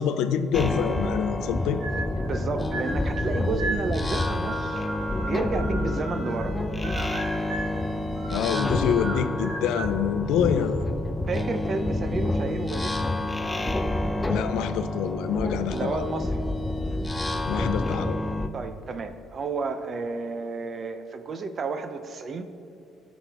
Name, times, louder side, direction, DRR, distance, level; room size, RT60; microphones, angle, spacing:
voice 1, 0.0-1.8 8.2-10.9 14.2-16.0 17.4-18.2, left 8 dB, 85° left, 10 dB, 0.5 m, -26 dB
sound 1, 0.5-18.5, left 1 dB, 10° left, 0.4 m, -28 dB
sound 2, 1.8-2.4 2.7-6.5 6.8-7.8 8.2-10.0, right 3 dB, 70° right, 1.3 m, -36 dB
voice 2, 2.2-4.8 5.3-6.6 11.3-12.9 15.6-16.5 18.5-22.4, right 4 dB, 35° right, 9 dB, 0.6 m, -31 dB
17.0 x 6.2 x 3.5 m, 2.6 s
cardioid pair, 150°, 0 cm